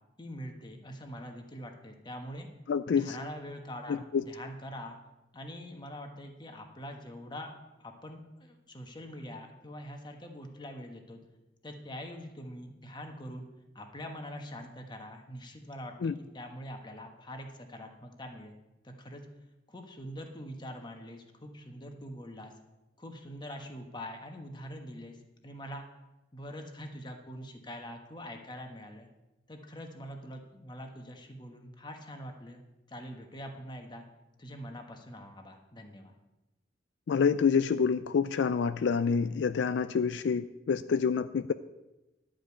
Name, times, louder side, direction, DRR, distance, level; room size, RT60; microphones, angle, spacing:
voice 1, 0.2-2.5 2.9-5.0 5.3-7.5 7.8-11.2 11.6-13.5 13.7-18.5 18.8-19.3 19.7-22.5 23.0-25.8 26.3-29.1 29.5-32.6 32.9-34.0 34.4-36.1, equal, 25° left, 4 dB, 1.2 m, -44 dB
voice 2, 2.7-3.2 3.9-4.2 16.0-16.1 37.1-41.5, left 6 dB, 75° left, 12 dB, 0.4 m, -27 dB
11.5 x 5.2 x 8.4 m, 1.0 s
head